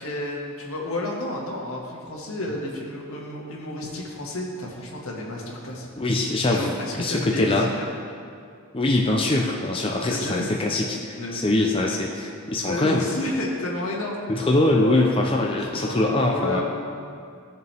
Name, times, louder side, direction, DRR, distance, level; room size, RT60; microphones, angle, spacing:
voice 1, 0.0-5.9 6.4-7.9 10.1-10.5 11.2-11.7 12.7-14.2 14.8-15.1 15.6-16.0 16.3-16.6, left 1 dB, 80° left, -2 dB, 1.9 m, -31 dB
voice 2, 6.0-6.7 7.0-7.7 8.7-13.0 14.3-16.6, left 2 dB, 25° left, -1 dB, 0.6 m, -23 dB
17.0 x 6.7 x 3.5 m, 2.2 s
head